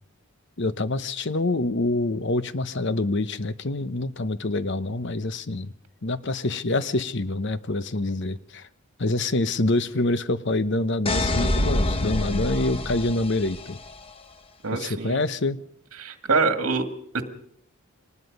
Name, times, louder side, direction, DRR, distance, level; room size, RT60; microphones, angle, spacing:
voice 1, 0.6-5.7 6.0-8.7 9.0-13.8 14.7-15.6, left 2 dB, 50° left, 0.9 m, -26 dB
sound 1, 11.1-13.9, left 1 dB, 25° left, 1.2 m, -26 dB
voice 2, 14.6-15.2 16.0-16.8 17.1-17.2, right 4 dB, 70° right, 2.1 m, -24 dB
25.0 x 19.5 x 5.4 m
head